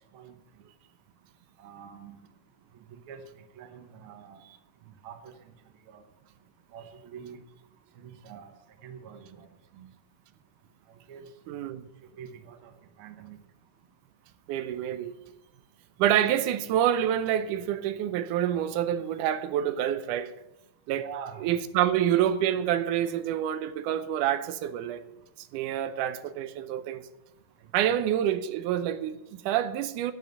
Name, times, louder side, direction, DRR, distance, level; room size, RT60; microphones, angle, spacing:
voice 1, 1.6-2.2 2.9-3.2 3.6-4.4 4.9-5.5 5.9-6.0 6.7-7.4 8.0-8.5 8.8-9.5 9.7-9.9 11.1-11.2 12.2-12.7 13.0-13.4 20.9-21.5 27.8-28.0, right 8 dB, 55° right, 1.6 m, -45 dB
voice 2, 11.5-11.9 14.5-15.1 16.0-20.3 20.9-21.1 21.4-25.0 25.4-27.0 27.7-30.1, right 10 dB, 85° right, 2.2 m, -27 dB
11.0 x 7.3 x 8.0 m
omnidirectional pair, 3.5 m